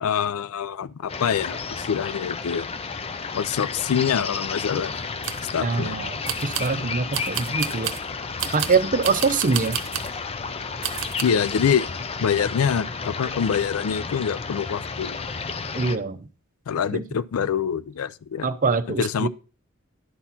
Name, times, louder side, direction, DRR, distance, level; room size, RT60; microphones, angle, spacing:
voice 1, 0.0-2.7 3.3-4.9 5.5-6.0 11.2-11.9 12.2-15.2 16.7-18.5 18.9-19.3, left 7 dB, 80° left, 0.4 m, -25 dB
sound 1, 1.1-16.0, left 5 dB, 30° left, 0.5 m, -32 dB
sound 2, 5.0-5.5 6.3-6.8 7.1-8.1 8.4-10.2 10.8-11.2, right 10 dB, 60° right, 0.9 m, -31 dB
voice 2, 5.6-7.9 8.5-9.8 15.7-16.3 16.9-17.0 18.4-19.3, right 4 dB, 40° right, 0.6 m, -24 dB
11.0 x 4.2 x 5.8 m
head